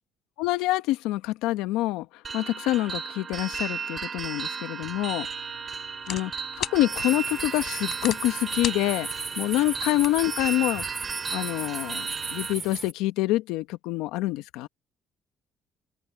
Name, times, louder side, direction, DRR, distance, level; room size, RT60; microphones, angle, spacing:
voice 1, 0.4-5.3 6.1-6.3 6.6-10.8 11.3-14.7, left 17 dB, 85° left, 1.2 m, -26 dB
sound 1, 2.2-12.5, right 6 dB, 45° right, 2.3 m, -35 dB
sound 2, 4.8-10.9, left 10 dB, 65° left, 4.0 m, -40 dB
sound 3, 6.9-12.9, right 3 dB, 30° right, 2.6 m, -36 dB
supercardioid pair, 65°, 0 cm